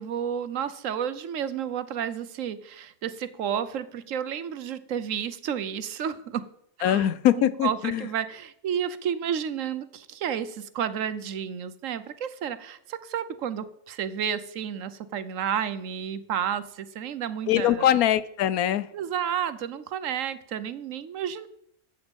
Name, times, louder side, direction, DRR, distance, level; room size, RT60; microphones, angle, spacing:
voice 1, 0.0-6.5 6.8-7.1 7.3-17.9 18.9-21.5, right 8 dB, 70° right, 13 dB, 1.1 m, -31 dB
voice 2, 6.8-8.0 17.5-18.9, left 11 dB, 85° left, 16 dB, 1.1 m, -22 dB
13.0 x 8.3 x 5.3 m, 0.73 s
omnidirectional pair, 1.5 m